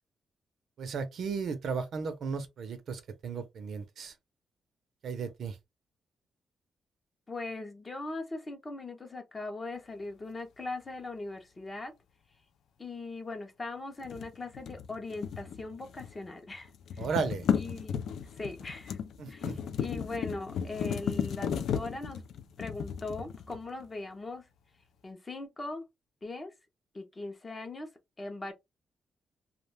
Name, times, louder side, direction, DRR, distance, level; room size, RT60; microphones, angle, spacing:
voice 1, 0.8-4.1 5.0-5.6 17.0-17.5 19.2-19.6, right 5 dB, 60° right, 0.5 m, -35 dB
voice 2, 7.3-11.9 12.8-17.1 17.5-18.0 18.4-19.0 19.3-22.2 22.6-24.4 25.0-25.8 26.2-26.5 26.9-27.9 28.2-28.5, left 2 dB, 20° left, 0.5 m, -40 dB
sound 1, 14.0-16.3 16.5-23.8, left 8 dB, 75° left, 0.3 m, -35 dB
2.3 x 2.1 x 3.1 m
wide cardioid pair, 160°, 0 cm